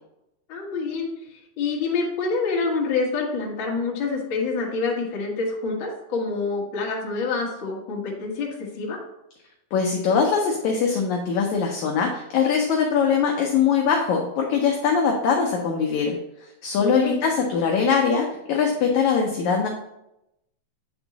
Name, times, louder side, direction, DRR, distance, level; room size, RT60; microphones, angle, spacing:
voice 1, 0.5-1.1 1.6-9.0 17.0-17.2, left 4 dB, 55° left, -2 dB, 1.4 m, -27 dB
voice 2, 9.7-16.1 16.4-19.7, left 6 dB, 80° left, 1 dB, 1.7 m, -22 dB
9.0 x 3.6 x 4.0 m, 0.85 s
omnidirectional pair, 4.2 m